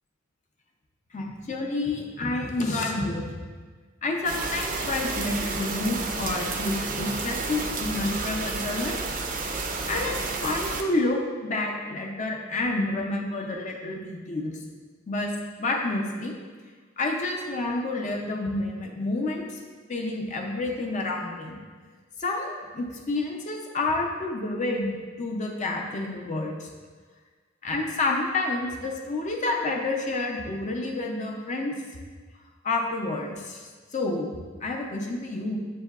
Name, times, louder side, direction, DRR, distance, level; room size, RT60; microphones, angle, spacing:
voice 1, 1.1-3.2 4.0-9.0 9.4-14.6 15.1-15.3 15.6-16.3 17.0-19.6 19.9-21.6 22.2-26.7 27.6-31.7 32.6-35.6, left 2 dB, 40° left, 1 dB, 0.5 m, -29 dB
sound 1, 4.2-10.8, right 3 dB, 45° right, 0.4 m, -31 dB
7.1 x 2.7 x 2.3 m, 1.5 s
head